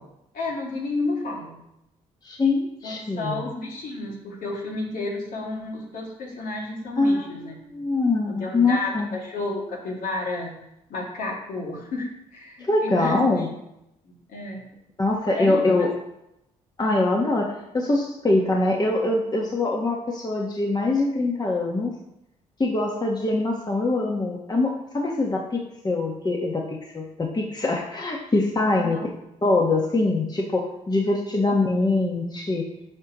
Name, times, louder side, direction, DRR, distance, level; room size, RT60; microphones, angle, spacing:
voice 1, 0.3-1.6 2.8-7.6 8.3-10.6 10.9-13.5 14.0-14.6 15.3-15.8 28.7-29.1, left 2 dB, 75° left, -2 dB, 2.2 m, -31 dB
voice 2, 2.2-3.5 7.0-9.1 12.6-13.5 15.0-15.9 16.8-21.9 22.6-29.0 29.4-32.7, left 2 dB, 30° left, 0 dB, 1.3 m, -23 dB
9.2 x 5.2 x 3.0 m, 0.83 s
supercardioid pair, 60°, 15 cm